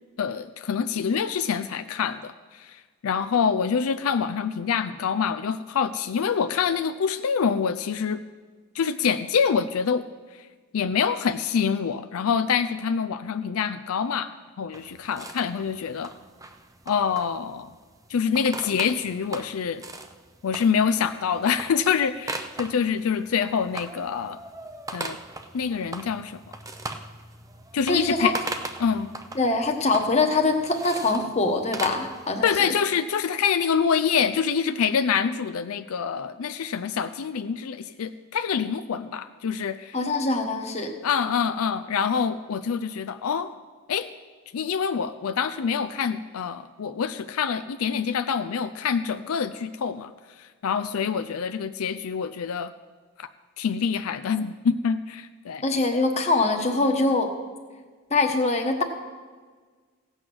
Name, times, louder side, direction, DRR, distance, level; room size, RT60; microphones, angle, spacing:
voice 1, 0.2-8.2 8.7-10.0 10.3-10.5 10.7-14.3 14.6-16.1 16.9-17.7 18.1-19.8 20.4-24.4 24.9-25.2 25.5-26.4 27.7-28.4 28.8-29.1 32.4-40.0 41.0-43.5 43.9-44.1 44.5-52.7 53.2-53.3 53.6-55.6, left 6 dB, 80° left, 10 dB, 0.4 m, -26 dB
sound 1, 14.7-32.5, right 2 dB, 15° right, 0.6 m, -40 dB
voice 2, 27.9-28.3 29.3-32.7 39.9-40.9 55.6-57.3 58.1-58.8, left 3 dB, 30° left, 4 dB, 1.2 m, -23 dB
16.0 x 7.9 x 6.2 m, 1.5 s
head